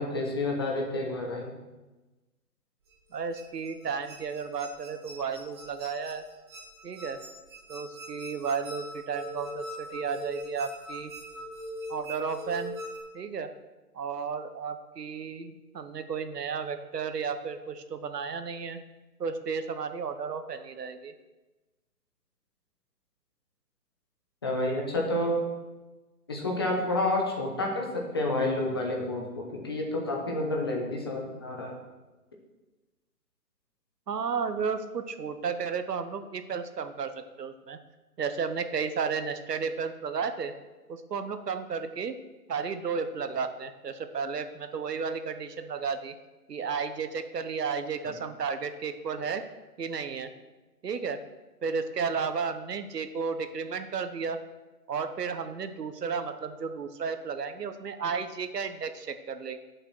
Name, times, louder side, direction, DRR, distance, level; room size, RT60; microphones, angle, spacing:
voice 1, 0.0-1.5 24.4-25.4 26.3-31.8, left 2 dB, 15° left, 0 dB, 0.9 m, -29 dB
sound 1, 2.9-13.0, equal, 15° right, 1.2 m, -42 dB
voice 2, 3.1-6.2 6.8-7.2 7.7-11.1 11.9-12.7 13.1-13.5 13.9-18.8 19.2-21.1 34.1-37.8 38.2-40.5 40.9-42.1 42.5-46.1 46.5-49.4 49.8-50.3 50.8-51.2 51.6-54.4 54.9-59.6, right 5 dB, 80° right, 9 dB, 1.1 m, -33 dB
8.8 x 6.7 x 6.2 m, 1.1 s
hypercardioid pair, 165°, 47 cm